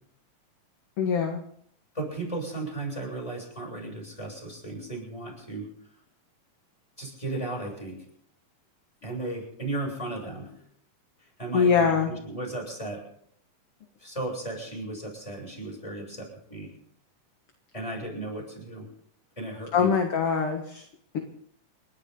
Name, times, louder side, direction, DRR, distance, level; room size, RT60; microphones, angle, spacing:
voice 1, 1.0-1.4 11.5-12.1 19.7-20.8, left 6 dB, 50° left, 3 dB, 2.3 m, -23 dB
voice 2, 1.9-5.7 7.0-8.0 9.0-10.5 11.4-13.1 14.0-16.7 17.7-18.8 19.4-19.9, right 2 dB, 10° left, -1 dB, 7.6 m, -35 dB
30.0 x 12.5 x 3.9 m, 0.66 s
omnidirectional pair, 3.6 m